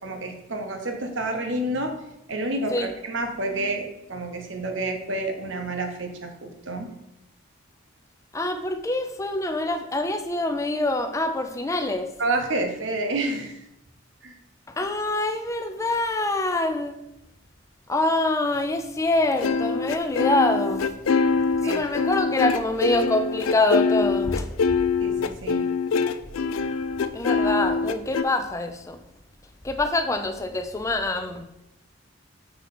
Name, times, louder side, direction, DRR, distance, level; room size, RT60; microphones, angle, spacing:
voice 1, 0.0-2.0 2.3-6.9 12.2-13.6 14.2-14.4 21.6-21.8 25.0-25.7, right 2 dB, 65° right, 5 dB, 0.9 m, -29 dB
voice 2, 8.3-12.1 14.7-17.0 17.9-20.9 21.6-24.5 27.1-29.0 29.6-31.4, left 2 dB, 15° left, 6 dB, 0.4 m, -25 dB
sound 1, 19.4-28.2, left 4 dB, 85° left, 0.4 m, -24 dB
5.8 x 4.3 x 4.2 m, 0.86 s
head